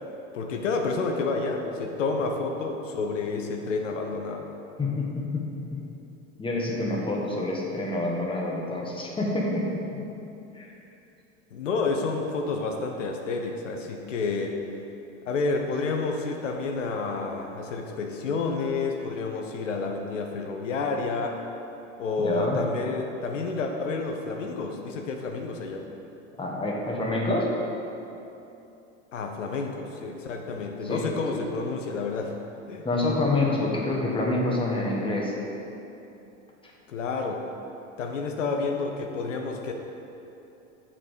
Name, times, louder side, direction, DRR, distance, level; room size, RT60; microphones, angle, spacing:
voice 1, 0.3-4.5 11.5-14.5 15.3-21.4 22.0-25.8 29.1-32.3 32.7-32.9 36.9-37.4 38.0-39.7, left 4 dB, 85° left, 3 dB, 0.7 m, -29 dB
voice 2, 4.8-5.8 6.4-10.0 10.5-10.7 22.2-22.6 26.4-27.5 30.8-31.0 31.3-31.4 32.8-35.3, left 2 dB, 15° left, -2 dB, 1.4 m, -27 dB
7.4 x 4.2 x 5.0 m, 2.9 s
hypercardioid pair, 85°, 36 cm